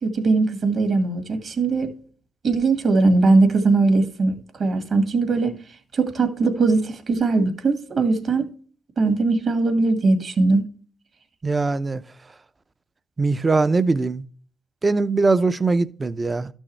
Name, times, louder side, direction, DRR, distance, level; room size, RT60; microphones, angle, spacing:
voice 1, 0.0-1.9 2.4-5.6 5.9-8.5 9.0-10.7, right 3 dB, 55° right, 1.9 m, -20 dB
voice 2, 11.4-12.0 13.2-14.2 14.8-16.5, right 3 dB, 25° right, 0.5 m, -21 dB
12.5 x 6.3 x 3.2 m
cardioid pair, 90°, 0 cm